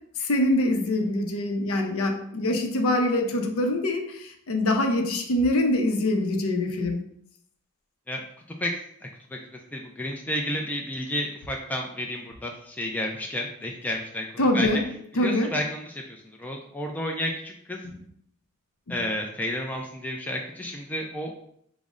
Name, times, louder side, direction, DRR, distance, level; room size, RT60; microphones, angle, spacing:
voice 1, 0.2-7.0 14.4-14.8 15.2-15.5 17.8-17.9 18.9-19.0, left 1 dB, 65° left, 3 dB, 0.6 m, -24 dB
voice 2, 8.6-14.7 15.2-17.8 18.9-21.3, left 1 dB, 5° left, 1 dB, 0.3 m, -31 dB
5.0 x 2.1 x 3.5 m, 0.69 s
head